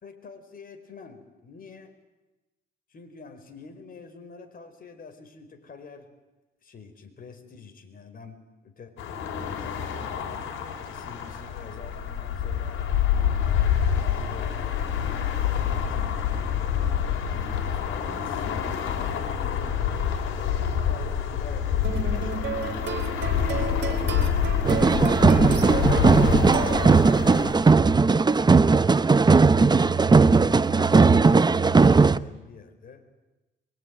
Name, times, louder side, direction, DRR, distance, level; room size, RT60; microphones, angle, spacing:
voice 1, 0.0-1.9 2.9-6.1 6.6-10.2 10.8-14.6 14.9-20.2 20.9-22.8 23.3-25.4 26.0-26.8 29.2-33.0, left 5 dB, 45° left, 7 dB, 4.7 m, -46 dB
sound 1, 9.0-27.5, left 8 dB, 90° left, 3.9 m, -27 dB
sound 2, 21.8-27.2, right 5 dB, 65° right, 3.5 m, -33 dB
sound 3, 24.6-32.2, right 4 dB, 20° right, 0.8 m, -18 dB
23.5 x 23.5 x 9.4 m, 1.1 s
cardioid pair, 90°, 20 cm